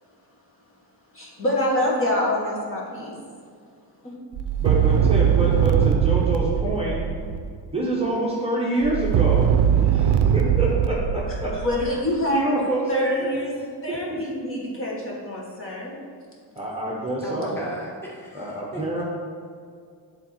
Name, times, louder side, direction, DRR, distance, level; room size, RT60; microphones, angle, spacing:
voice 1, 1.1-3.2 4.0-4.1 11.5-12.4 12.9-16.0, left 1 dB, 30° left, -4 dB, 1.5 m, -26 dB
sound 1, 4.3-7.6 8.8-12.1, right 8 dB, 75° right, 0.5 m, -21 dB
voice 2, 4.6-7.0 7.7-9.5 9.7-11.6 12.3-13.3 13.9-14.2 16.5-17.6 18.3-19.0, right 1 dB, 15° right, -6 dB, 0.9 m, -26 dB
voice 3, 17.2-19.0, equal, 5° left, -4 dB, 1.2 m, -36 dB
10.0 x 3.7 x 4.3 m, 2.2 s
wide cardioid pair, 170°, 42 cm